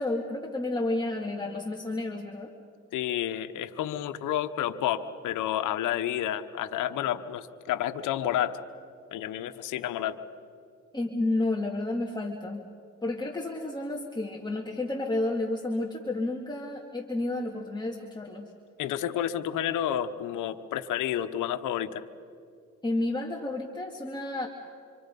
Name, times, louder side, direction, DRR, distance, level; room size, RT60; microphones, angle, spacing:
voice 1, 0.0-2.5 10.9-12.6 13.0-18.5 22.8-24.5, left 2 dB, 15° left, -1 dB, 2.2 m, -31 dB
voice 2, 2.9-8.6 9.1-10.2 18.8-22.0, left 11 dB, 85° left, 8 dB, 1.1 m, -30 dB
26.5 x 26.0 x 5.4 m, 2.3 s
cardioid pair, 90°, 30 cm